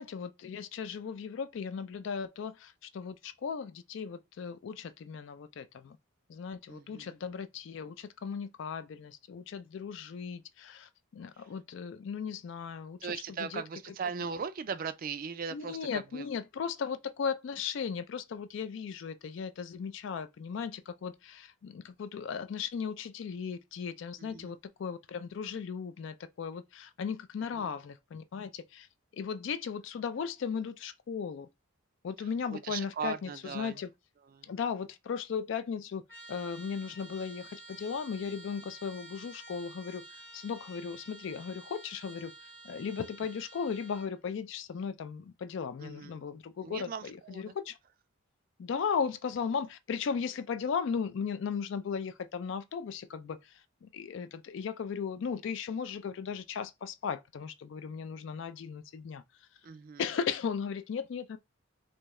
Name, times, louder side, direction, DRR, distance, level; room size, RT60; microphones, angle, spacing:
voice 1, 0.0-6.0 6.3-13.1 13.4-13.6 15.5-28.9 29.2-31.5 32.0-33.9 34.4-36.0 36.3-40.0 40.3-42.3 42.6-47.8 48.6-53.5 53.8-59.2 60.0-61.4, left 6 dB, 60° left, 0.3 m, -36 dB
voice 2, 6.7-7.2 11.4-11.5 13.0-16.3 24.2-24.6 27.5-27.7 32.2-33.8 34.2-34.5 45.8-46.2 46.6-47.5 59.6-60.0, right 6 dB, 45° right, 0.3 m, -39 dB
Trumpet, 36.1-44.2, right 2 dB, 10° left, 0.8 m, -51 dB
3.4 x 2.7 x 3.1 m
head